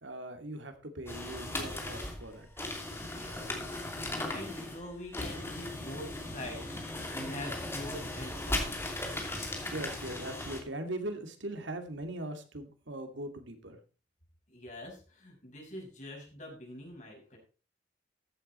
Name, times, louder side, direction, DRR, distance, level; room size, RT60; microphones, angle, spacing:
voice 1, 0.0-2.5 9.7-13.8, right 1 dB, 80° right, 7 dB, 2.3 m, -40 dB
sound 1, 1.1-10.6, left 1 dB, 15° left, 2.7 m, -37 dB
voice 2, 3.1-8.9 14.5-17.4, left 1 dB, 40° left, 0 dB, 6.0 m, -45 dB
14.5 x 8.6 x 4.2 m, 0.35 s
head